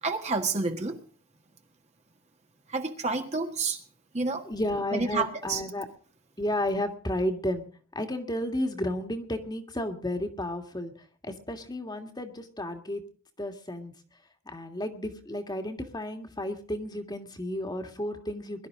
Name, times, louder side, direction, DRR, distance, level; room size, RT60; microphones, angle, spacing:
voice 1, 0.0-1.0 2.7-3.8 4.1-4.5 4.9-5.6, right 3 dB, 30° right, 1.6 m, -29 dB
voice 2, 4.5-5.9 6.4-7.7 8.0-10.9 11.2-13.0 13.4-13.9 14.5-18.7, left 1 dB, 20° left, 1.9 m, -32 dB
22.0 x 12.0 x 3.7 m
head